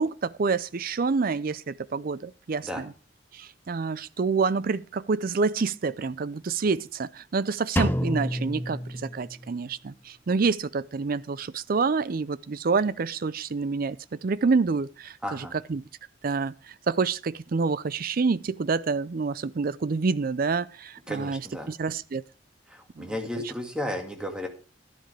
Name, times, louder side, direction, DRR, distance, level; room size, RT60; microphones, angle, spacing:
voice 1, 0.0-2.9 3.3-15.8 16.2-21.4 21.7-22.2 23.0-23.2, right 4 dB, 50° right, 0.5 m, -27 dB
Drum, 7.8-9.7, left 1 dB, 10° left, 0.6 m, -29 dB
voice 2, 15.2-15.5 21.1-21.7 22.7-24.5, left 1 dB, 5° right, 2.0 m, -33 dB
12.5 x 10.5 x 3.3 m
head